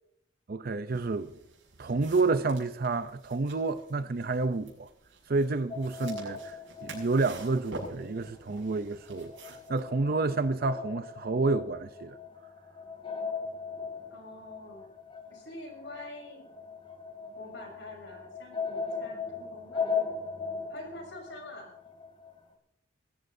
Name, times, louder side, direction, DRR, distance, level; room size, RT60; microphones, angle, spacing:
voice 1, 0.5-1.3 1.8-4.9 5.3-12.2, right 3 dB, 50° right, 0.6 m, -29 dB
sound 1, 0.9-9.8, right 2 dB, 85° right, 6.5 m, -48 dB
sound 2, 5.7-8.3 8.5-22.4, left 5 dB, 30° left, 2.8 m, -38 dB
voice 2, 14.1-14.9 15.3-16.4 17.4-19.9 20.7-21.7, left 1 dB, 70° left, 6.2 m, -46 dB
22.0 x 14.5 x 2.7 m
head